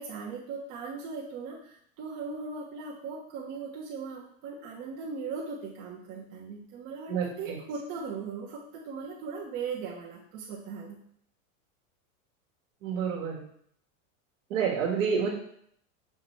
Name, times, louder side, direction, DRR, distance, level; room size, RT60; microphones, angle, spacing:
voice 1, 0.0-11.0, right 5 dB, 55° right, -5 dB, 1.4 m, -38 dB
voice 2, 7.1-7.6 12.8-13.5 14.5-15.3, right 6 dB, 70° right, -1 dB, 1.9 m, -28 dB
6.1 x 3.0 x 5.5 m, 0.67 s
supercardioid pair, 120°, 40 cm